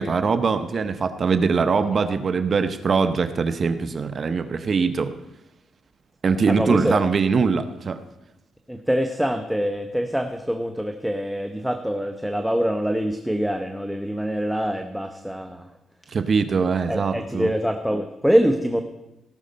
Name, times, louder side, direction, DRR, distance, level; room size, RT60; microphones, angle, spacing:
voice 1, 0.0-5.1 6.2-8.0 16.1-17.5, right 5 dB, 45° right, 10 dB, 0.7 m, -22 dB
voice 2, 6.5-7.0 8.7-15.7 16.9-18.8, equal, ahead, 5 dB, 0.8 m, -24 dB
17.0 x 6.4 x 5.2 m, 0.94 s
cardioid pair, 110°, 0 cm